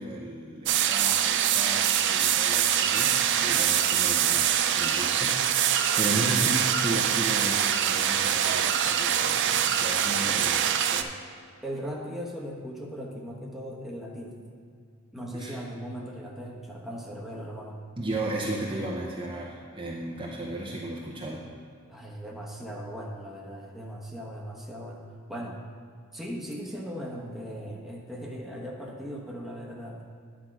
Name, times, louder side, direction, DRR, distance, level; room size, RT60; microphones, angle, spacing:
voice 1, 0.0-5.4 6.0-10.6 10.9-11.1 15.3-15.6 18.0-21.5, right 1 dB, 25° right, -3 dB, 0.8 m, -34 dB
sound 1, 0.7-11.0, right 9 dB, 55° right, 0.4 m, -24 dB
voice 2, 6.0-6.4 10.3-10.5 11.6-14.4 15.1-17.8 21.9-25.6 26.1-30.1, equal, ahead, -3 dB, 1.1 m, -38 dB
10.0 x 4.7 x 5.9 m, 2.2 s
head